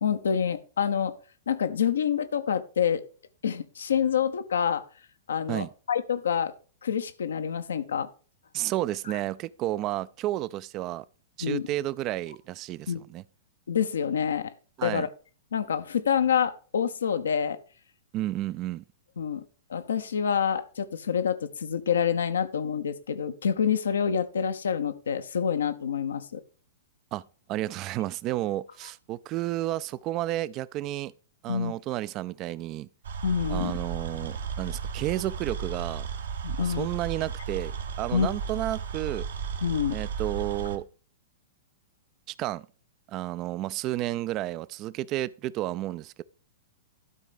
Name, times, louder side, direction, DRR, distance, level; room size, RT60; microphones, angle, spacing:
voice 1, 0.0-1.2 1.5-3.0 3.4-4.8 5.3-6.5 6.8-8.1 11.4-11.7 12.9-13.0 13.7-14.5 14.8-15.1 15.5-17.6 19.2-19.4 19.7-26.4 31.5-31.7 33.2-33.8 36.4-36.9 38.1-38.3 39.6-40.0, left 7 dB, 70° left, 0.8 m, -27 dB
voice 2, 8.5-11.0 11.4-13.2 14.8-15.1 18.1-18.8 27.1-27.2 27.5-31.1 31.4-32.9 33.5-36.1 36.6-39.3 39.9-40.8 42.3-42.7 43.1-46.2, right 15 dB, 35° right, 0.4 m, -31 dB
sound 1, 33.0-40.8, right 6 dB, 65° right, 1.1 m, -34 dB
12.0 x 4.1 x 4.9 m
figure-of-eight pair, 105°, 0 cm